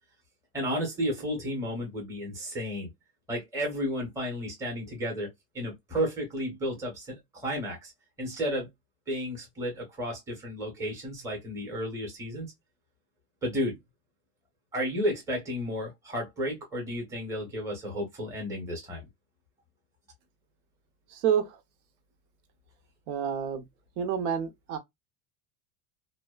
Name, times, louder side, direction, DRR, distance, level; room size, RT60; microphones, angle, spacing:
voice 1, 0.5-2.9 3.3-5.3 5.5-7.9 8.2-8.7 9.1-12.5 13.4-13.8 14.7-19.0, equal, 5° right, 0.7 m, -32 dB
voice 2, 21.1-21.5 23.1-23.6 24.0-24.8, right 8 dB, 80° right, 0.8 m, -28 dB
2.6 x 2.1 x 2.2 m
cardioid pair, 175°, 49 cm